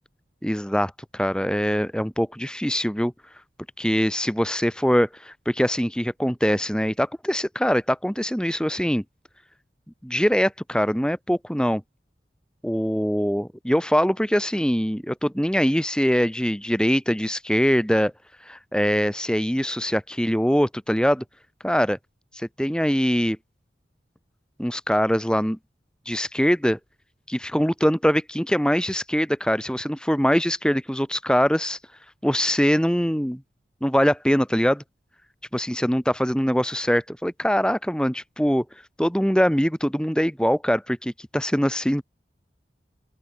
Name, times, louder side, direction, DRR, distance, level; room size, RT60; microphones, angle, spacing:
voice 1, 0.4-3.1 3.8-9.0 10.0-11.8 12.6-18.1 18.4-21.2 21.6-22.0 22.3-23.4 24.6-25.6 26.1-26.8 27.3-31.8 32.2-33.4 33.8-34.8 35.5-38.6 39.0-42.0, equal, 5° left, 4.6 m, -23 dB
open air
head